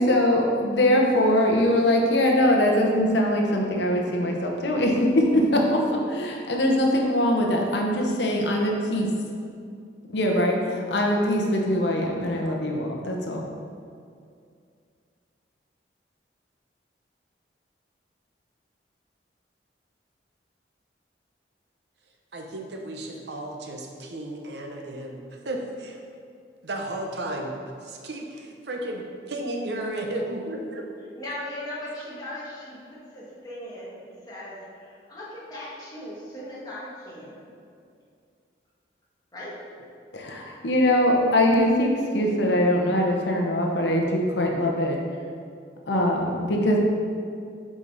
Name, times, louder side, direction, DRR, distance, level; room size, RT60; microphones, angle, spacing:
voice 1, 0.0-9.1 10.1-13.5 40.1-45.0 45.9-46.8, left 1 dB, 75° left, 0 dB, 0.9 m, -22 dB
voice 2, 22.3-26.0 26.6-27.5 27.8-30.8, right 1 dB, 70° right, 2 dB, 0.8 m, -33 dB
voice 3, 31.2-37.5 39.3-39.5, left 1 dB, 20° left, -8 dB, 1.7 m, -38 dB
7.2 x 5.0 x 4.0 m, 2.3 s
head